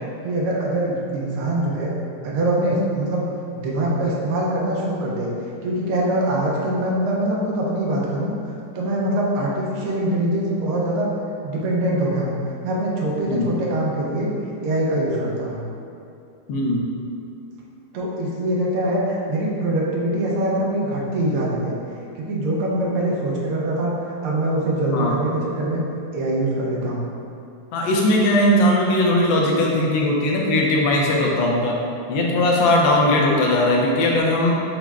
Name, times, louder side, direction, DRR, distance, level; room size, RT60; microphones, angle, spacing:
voice 1, 0.2-1.9 2.2-3.3 3.5-5.3 5.6-8.3 8.7-11.1 11.4-12.4 12.6-14.3 14.6-15.7 17.9-21.8 22.2-23.9 24.2-25.8 26.1-27.1, right 1 dB, 85° right, -3 dB, 1.6 m, -23 dB
voice 2, 16.5-16.8 24.9-25.1 27.7-31.8 32.1-34.5, left 1 dB, 75° left, -2 dB, 1.3 m, -19 dB
5.9 x 2.1 x 3.4 m, 2.6 s
omnidirectional pair, 2.3 m